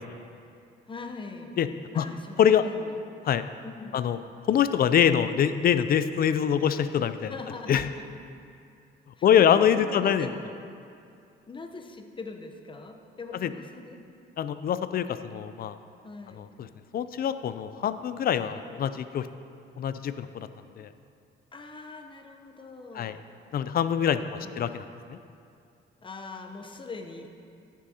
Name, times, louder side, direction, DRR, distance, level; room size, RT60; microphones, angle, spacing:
voice 1, 0.9-1.6 1.9-3.0 3.6-4.0 7.3-7.8 9.2-9.5 9.7-10.3 11.5-14.0 16.0-16.5 18.6-18.8 21.5-23.2 24.2-24.8 26.0-27.3, left 3 dB, 25° left, 4 dB, 0.8 m, -42 dB
voice 2, 4.5-7.3 7.7-7.9 9.2-10.3 13.4-13.5 14.4-15.8 16.4-16.7 16.9-19.3 19.8-20.5 20.8-20.9 22.9-23.2 23.5-25.2, left 9 dB, 50° left, 12 dB, 0.4 m, -24 dB
13.5 x 6.2 x 2.8 m, 2.5 s
cardioid pair, 90°, 20 cm